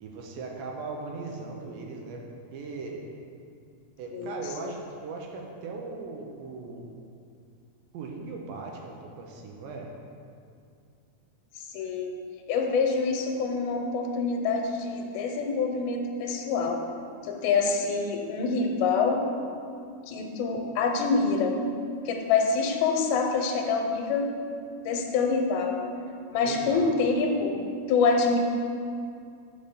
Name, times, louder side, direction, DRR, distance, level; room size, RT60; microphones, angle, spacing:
voice 1, 0.0-2.3 2.5-3.0 4.0-6.9 7.9-9.9 26.4-26.9, right 3 dB, 75° right, 1 dB, 2.5 m, -38 dB
voice 2, 11.7-12.1 12.5-16.8 17.2-19.2 20.1-21.6 22.1-24.3 24.8-25.8 26.3-27.6 27.9-28.4, left 4 dB, 85° left, 2 dB, 2.6 m, -26 dB
6.0 x 5.4 x 6.7 m, 2.3 s
omnidirectional pair, 4.4 m